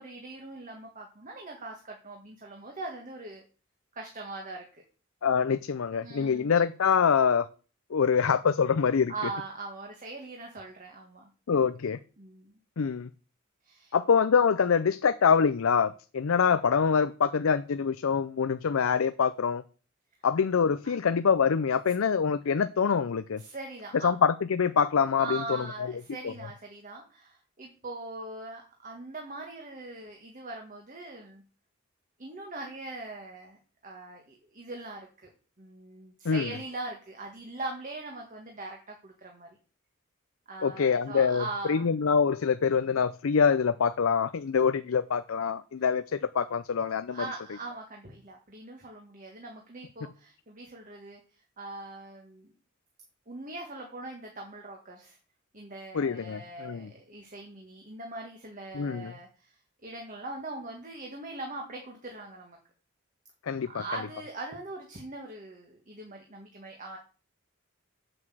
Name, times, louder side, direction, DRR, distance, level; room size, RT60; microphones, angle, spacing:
voice 1, 0.0-3.4 3.9-4.8 6.0-6.5 9.1-11.3 12.2-12.6 13.6-13.9 20.8-21.0 23.4-24.1 25.2-31.4 32.2-35.3 35.6-39.6 40.5-41.9 47.1-51.2 51.6-52.5 53.3-55.2 55.5-62.6 63.7-67.0, right 2 dB, 40° right, 1 dB, 1.7 m, -41 dB
voice 2, 5.2-7.5 7.9-9.1 11.5-12.0 12.8-13.1 13.9-19.6 20.2-23.4 24.0-25.6 26.2-26.3 36.2-36.5 40.6-47.2 55.9-56.9 58.7-59.1 63.5-63.8, left 6 dB, 70° left, 12 dB, 0.5 m, -25 dB
7.8 x 6.0 x 7.6 m, 0.37 s
head